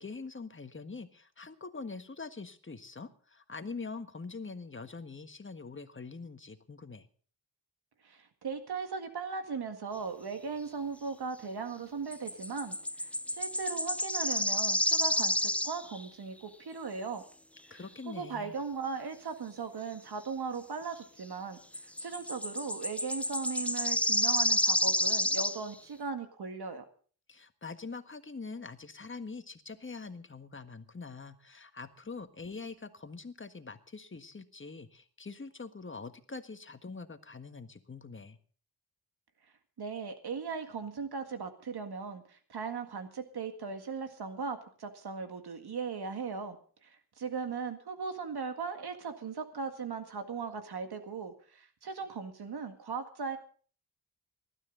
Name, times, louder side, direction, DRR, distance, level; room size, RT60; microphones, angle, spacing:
voice 1, 0.0-7.1 17.7-18.6 27.3-38.4, left 4 dB, 30° left, 9 dB, 1.6 m, -44 dB
voice 2, 8.0-17.2 17.7-17.8 18.1-21.6 22.0-26.8 39.8-46.6 46.8-53.4, right 5 dB, 70° right, 7 dB, 1.9 m, -38 dB
sound 1, 12.1-16.1 21.7-25.6, left 1 dB, 5° left, 0.6 m, -30 dB
20.0 x 12.5 x 3.9 m, 0.43 s
cardioid pair, 80°, 40 cm